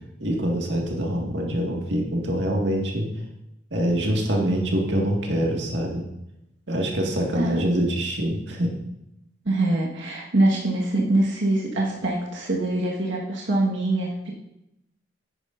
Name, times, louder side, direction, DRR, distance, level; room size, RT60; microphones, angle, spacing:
voice 1, 0.2-3.1 3.7-6.0 6.7-8.7, right 1 dB, 70° right, -1 dB, 1.9 m, -25 dB
voice 2, 9.4-14.3, right 2 dB, 85° right, -4 dB, 1.6 m, -24 dB
10.0 x 9.7 x 2.6 m, 0.85 s
head